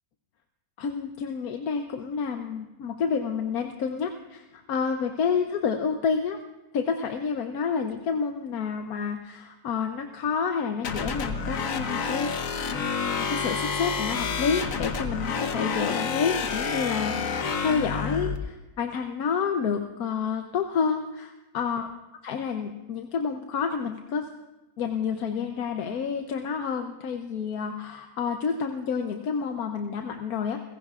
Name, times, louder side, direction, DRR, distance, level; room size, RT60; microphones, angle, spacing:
voice 1, 0.8-6.4 6.7-12.3 12.7-21.9 22.2-24.3 24.8-30.6, left 6 dB, 90° left, 5 dB, 1.3 m, -29 dB
sound 1, 10.8-18.4, left 5 dB, 65° left, 1.4 m, -29 dB
29.5 x 16.0 x 2.4 m, 1.1 s
omnidirectional pair, 1.5 m